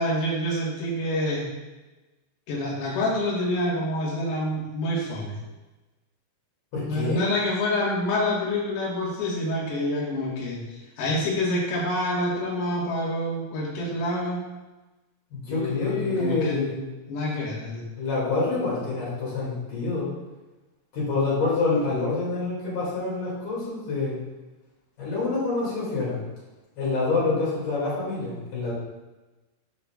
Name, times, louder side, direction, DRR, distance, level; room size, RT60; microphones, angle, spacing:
voice 1, 0.0-1.4 2.5-5.4 6.8-14.4 15.5-16.7 17.1-17.8, left 1 dB, 80° left, -5 dB, 4.4 m, -27 dB
voice 2, 6.7-7.3 15.3-16.8 18.0-20.1 20.9-24.2 25.0-26.2 26.8-28.7, left 3 dB, 45° left, -7 dB, 3.3 m, -27 dB
9.8 x 6.0 x 2.4 m, 1.1 s
omnidirectional pair, 5.9 m